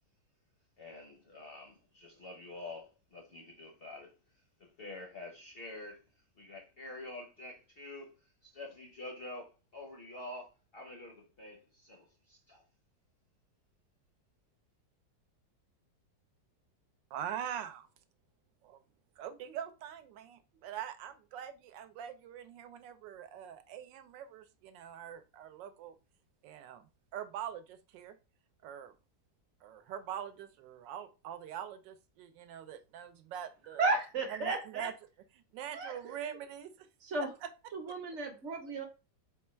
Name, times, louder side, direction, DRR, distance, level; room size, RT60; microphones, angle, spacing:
voice 1, 0.8-4.2 4.6-6.0 6.4-12.6, left 2 dB, 55° left, 0.6 m, -47 dB
voice 2, 17.1-17.9 18.6-18.8 19.2-26.0 26.4-28.2 28.6-28.9 29.6-33.9 34.3-34.9 35.5-36.9 37.4-37.5 37.9-38.0, right 9 dB, 85° right, 1.3 m, -43 dB
voice 3, 33.8-34.9 35.7-36.1 37.1-37.3 37.7-38.8, right 3 dB, 50° right, 0.9 m, -34 dB
4.3 x 2.2 x 4.3 m
omnidirectional pair, 1.9 m